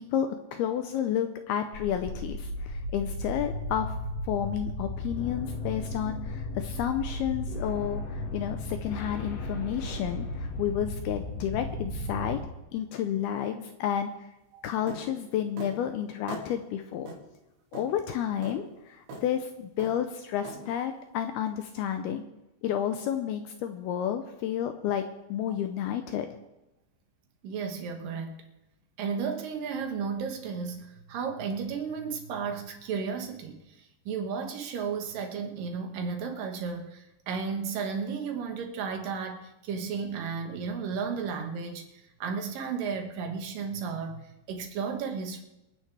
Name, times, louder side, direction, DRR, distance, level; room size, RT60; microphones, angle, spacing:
voice 1, 0.0-3.9 4.2-12.4 12.7-14.3 14.6-17.1 17.7-22.2 22.6-26.4, left 9 dB, 80° left, 2.4 m, -31 dB
sound 1, 1.7-12.4, left 1 dB, 55° left, 3.2 m, -35 dB
sound 2, 14.9-15.1 15.6-15.8 16.3-16.5 17.1-17.2 17.7-17.9 18.4-18.6 19.1-19.3 19.8-20.0 20.4-20.6, right 2 dB, 80° right, 4.8 m, -40 dB
voice 2, 27.4-28.4 29.0-45.4, right 5 dB, 65° right, 2.6 m, -34 dB
26.5 x 9.5 x 3.4 m
omnidirectional pair, 5.0 m